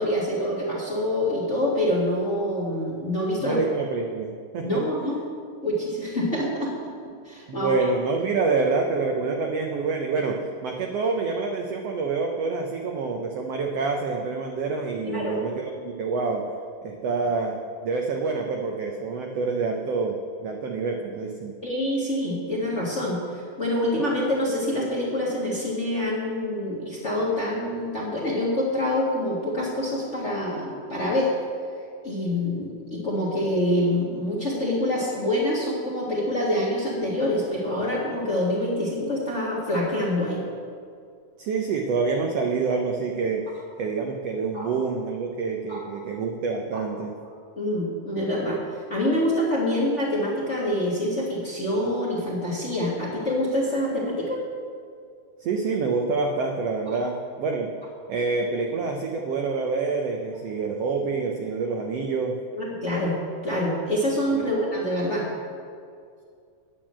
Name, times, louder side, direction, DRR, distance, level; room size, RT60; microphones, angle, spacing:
voice 1, 0.0-3.6 4.6-5.2 5.6-6.7 7.2-7.7 15.0-15.4 21.6-31.3 32.0-40.4 44.5-44.7 45.7-45.8 47.5-48.6 48.9-54.4 62.5-63.1 63.4-65.2, left 1 dB, 30° left, -6 dB, 1.5 m, -26 dB
voice 2, 3.4-4.8 7.5-16.4 16.8-21.6 41.4-47.2 55.4-57.7 58.1-62.3 64.3-64.5, right 4 dB, 80° right, 2 dB, 1.4 m, -27 dB
9.3 x 9.0 x 7.5 m, 2.3 s
omnidirectional pair, 3.8 m